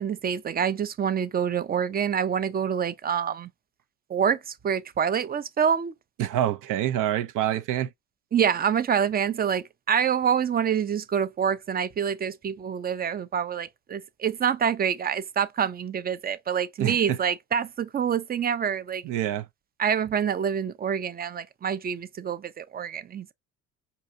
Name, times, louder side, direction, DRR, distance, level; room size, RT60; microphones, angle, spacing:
voice 1, 0.0-3.5 4.1-5.9 8.3-19.0 19.8-23.3, right 8 dB, 30° right, 0.5 m, -26 dB
voice 2, 6.2-7.9 16.8-17.2 19.0-19.5, right 12 dB, 75° right, 0.6 m, -26 dB
4.6 x 2.8 x 2.5 m
cardioid pair, 85°, 32 cm